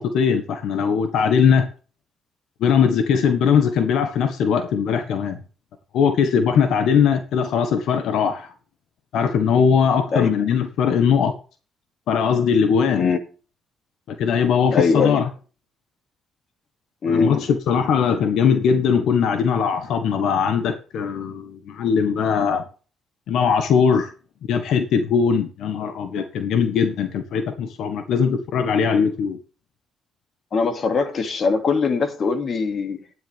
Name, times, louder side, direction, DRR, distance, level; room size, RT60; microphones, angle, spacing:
voice 1, 0.0-1.7 2.6-5.4 5.9-8.5 9.1-11.4 12.1-13.1 14.1-15.3 17.0-22.6 23.3-24.1 24.5-29.4, left 6 dB, 80° left, 1.6 m, -20 dB
voice 2, 14.7-15.2 17.0-17.5 30.5-33.0, left 4 dB, 50° left, 2.5 m, -21 dB
13.0 x 10.5 x 3.6 m
cardioid pair, 90°, 0 cm